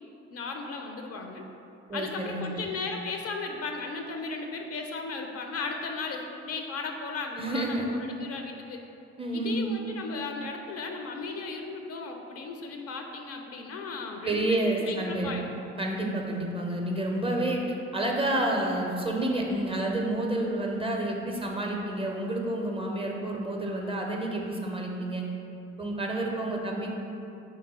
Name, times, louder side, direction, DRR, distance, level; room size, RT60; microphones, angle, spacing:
voice 1, 0.3-1.4 1.9-8.8 9.3-14.4 14.9-15.5, left 4 dB, 45° left, 3 dB, 0.4 m, -36 dB
voice 2, 1.9-2.4 7.4-7.9 9.2-9.7 14.2-15.3 15.8-25.2 25.8-26.9, right 1 dB, 15° right, 0 dB, 0.4 m, -29 dB
3.6 x 2.2 x 4.0 m, 2.7 s
hypercardioid pair, 45°, 34 cm